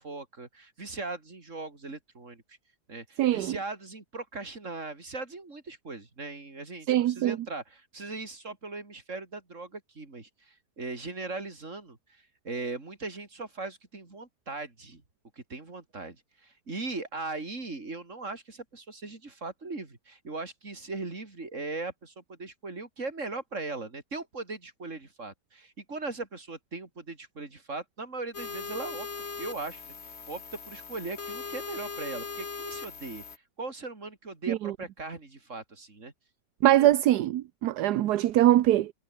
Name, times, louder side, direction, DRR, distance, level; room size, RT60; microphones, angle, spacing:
voice 1, 0.0-2.4 2.9-15.0 15.4-29.1 29.4-29.8 30.3-33.2 33.6-36.1, right 3 dB, 45° right, 4.0 m, -39 dB
voice 2, 3.2-3.6 6.9-7.4 34.5-34.7 36.6-38.9, right 13 dB, 70° right, 1.3 m, -22 dB
sound 1, 28.3-33.4, left 5 dB, 40° left, 2.0 m, -39 dB
omnidirectional pair, 1.8 m